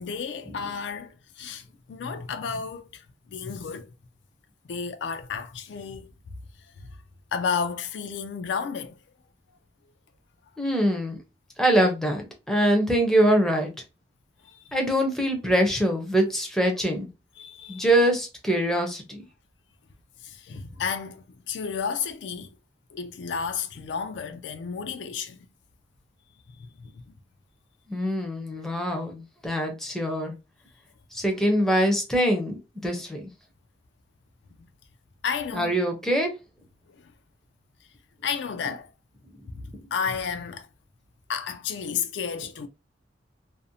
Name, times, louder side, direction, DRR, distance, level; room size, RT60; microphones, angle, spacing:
voice 1, 0.0-1.6 1.9-3.9 4.7-6.1 7.3-9.0 14.4-14.6 17.4-17.8 20.2-22.5 22.9-25.4 26.5-26.9 35.2-35.8 38.2-38.9 39.9-40.7 41.3-42.7, left 6 dB, 70° left, 0.4 m, -32 dB
voice 2, 10.6-11.2 11.6-13.7 14.7-17.1 17.7-19.2 27.9-30.3 31.1-33.3 35.5-36.3, right 1 dB, ahead, 0.5 m, -24 dB
2.5 x 2.0 x 2.6 m
head